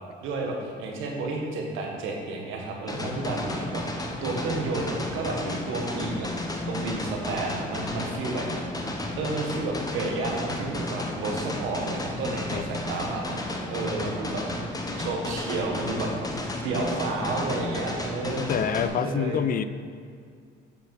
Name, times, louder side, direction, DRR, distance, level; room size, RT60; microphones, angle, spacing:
voice 1, 0.2-6.3 6.7-8.6 9.2-13.4 13.7-14.4 15.0-16.1 16.6-19.4, right 3 dB, 80° right, 0 dB, 1.5 m, -31 dB
sound 1, 2.9-18.9, left 2 dB, 20° left, 1.0 m, -33 dB
voice 2, 18.3-19.6, left 8 dB, 45° left, 13 dB, 0.4 m, -27 dB
8.1 x 5.7 x 4.5 m, 2.3 s
cardioid pair, 90°, 20 cm